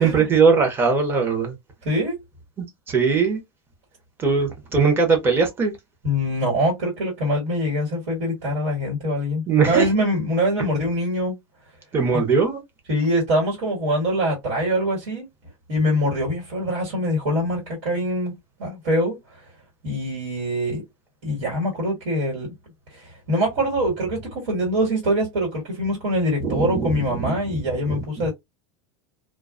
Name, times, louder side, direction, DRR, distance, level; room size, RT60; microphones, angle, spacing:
voice 1, 0.0-1.5 2.9-3.4 4.2-5.7 9.5-9.9 11.9-12.6 26.4-28.3, right 5 dB, 15° right, 0.6 m, -20 dB
voice 2, 1.8-2.1 6.0-11.4 12.1-12.2 12.9-15.3 15.7-18.3 18.6-19.2 19.8-20.8 21.2-22.5 22.9-28.3, equal, 90° right, 1.6 m, -24 dB
2.4 x 2.2 x 2.3 m
supercardioid pair, 165°, 15 cm